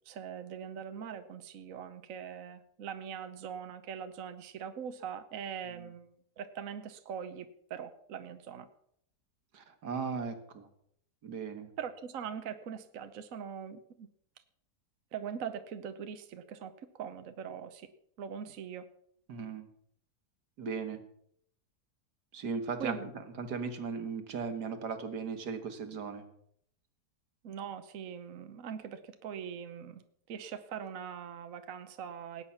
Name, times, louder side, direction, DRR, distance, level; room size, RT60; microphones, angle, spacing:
voice 1, 0.1-8.7 11.8-14.1 15.1-17.9 18.2-18.9 22.8-23.1 27.4-30.0 30.3-32.4, right 7 dB, 60° right, 9 dB, 1.2 m, -42 dB
voice 2, 9.5-10.6 11.2-11.7 19.3-19.7 20.6-21.0 22.3-23.0 23.4-26.2, right 5 dB, 75° right, 8 dB, 2.0 m, -37 dB
18.5 x 8.9 x 5.7 m, 0.70 s
omnidirectional pair, 1.8 m